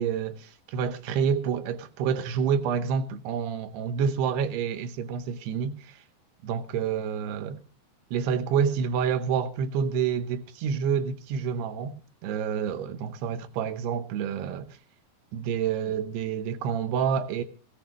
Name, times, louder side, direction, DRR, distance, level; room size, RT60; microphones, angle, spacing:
voice 1, 0.0-6.0 6.4-7.6 8.1-12.0 12.2-14.7 15.3-17.4, right 7 dB, 85° right, 3.0 m, -28 dB
19.5 x 17.0 x 3.0 m
omnidirectional pair, 4.6 m